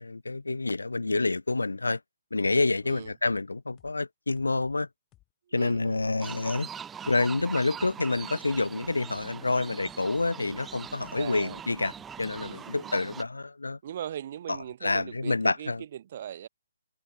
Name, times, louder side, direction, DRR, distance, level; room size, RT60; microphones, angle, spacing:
voice 1, 0.0-2.0 2.3-4.9 5.5-6.7 7.1-11.9 12.2-13.8 14.8-15.8, left 3 dB, 70° left, 0.4 m, -28 dB
sound 1, 3.0-3.4 3.8-4.0 4.4-4.8 5.1-5.3 5.7-6.1 6.5-6.6 7.0-7.4 7.8-13.1, left 17 dB, 15° left, 4.7 m, -60 dB
voice 2, 5.5-6.1 11.1-11.6 12.4-12.9 13.8-16.5, right 10 dB, 40° right, 0.9 m, -40 dB
sound 2, 6.2-13.2, right 7 dB, 10° right, 0.8 m, -42 dB
figure-of-eight pair, 135°, 0 cm